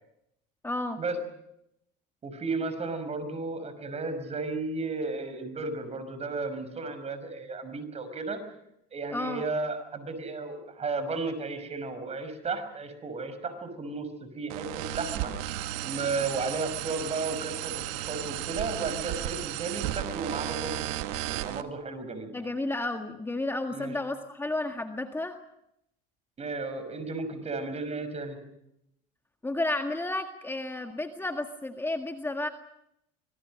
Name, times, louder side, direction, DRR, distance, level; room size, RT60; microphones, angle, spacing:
voice 1, 0.6-1.0 9.1-9.4 22.3-25.4 29.4-32.5, left 2 dB, 10° left, 6 dB, 1.8 m, -32 dB
voice 2, 2.2-8.4 8.9-14.1 14.4-15.3 15.8-20.9 21.3-22.3 23.7-23.9 26.4-28.4, right 3 dB, 30° right, 10 dB, 5.7 m, -34 dB
sound 1, 14.5-21.6, right 14 dB, 75° right, 1.6 m, -34 dB
25.5 x 21.0 x 6.4 m, 0.79 s
supercardioid pair, 100°, 21 cm